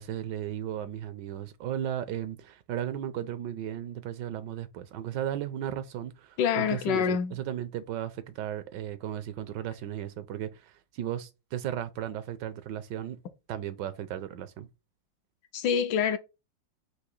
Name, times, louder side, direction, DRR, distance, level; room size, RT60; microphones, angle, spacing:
voice 1, 0.0-13.2 13.5-14.7, right 10 dB, 75° right, 1.2 m, -35 dB
voice 2, 6.4-7.4 15.5-16.2, left 7 dB, 75° left, 1.2 m, -26 dB
4.8 x 2.7 x 3.8 m
omnidirectional pair, 2.1 m